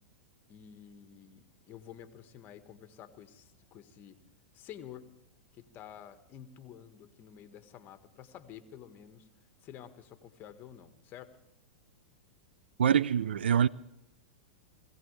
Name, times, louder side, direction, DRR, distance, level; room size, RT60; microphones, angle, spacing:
voice 1, 0.5-4.2 4.5-5.1 5.5-9.3 9.6-11.3, left 9 dB, 35° left, 1.6 m, -50 dB
voice 2, 12.8-13.7, right 8 dB, 85° right, 0.4 m, -25 dB
21.0 x 16.5 x 3.3 m
hypercardioid pair, 115°, 6 cm